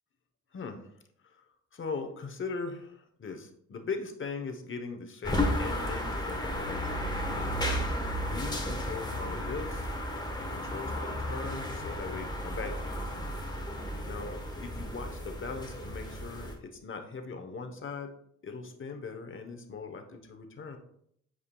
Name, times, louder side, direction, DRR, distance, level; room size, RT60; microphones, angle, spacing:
voice 1, 0.5-0.9 1.2-1.4 1.7-7.1 7.7-9.9 10.4-13.1 13.9-18.1 18.4-20.8, left 4 dB, 40° left, 6 dB, 1.0 m, -40 dB
sound 1, 5.2-16.5, left 1 dB, 15° left, 1.2 m, -33 dB
8.5 x 4.9 x 2.3 m, 0.70 s
cardioid pair, 80°, 30 cm